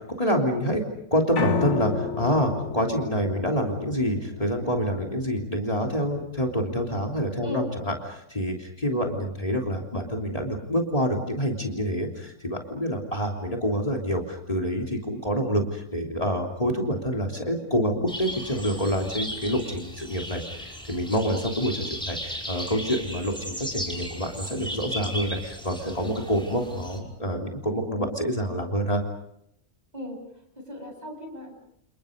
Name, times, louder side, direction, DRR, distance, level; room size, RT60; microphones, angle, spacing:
voice 1, 0.2-0.8 1.1-29.0, equal, 30° left, 0 dB, 3.4 m, -27 dB
Piano, 1.4-7.5, left 5 dB, 75° left, 1.6 m, -33 dB
sound 1, 18.1-27.0, equal, 5° left, 5.8 m, -36 dB
voice 2, 30.6-31.5, left 1 dB, 35° right, 2 dB, 8.3 m, -36 dB
30.0 x 29.5 x 5.3 m, 0.74 s
omnidirectional pair, 1.2 m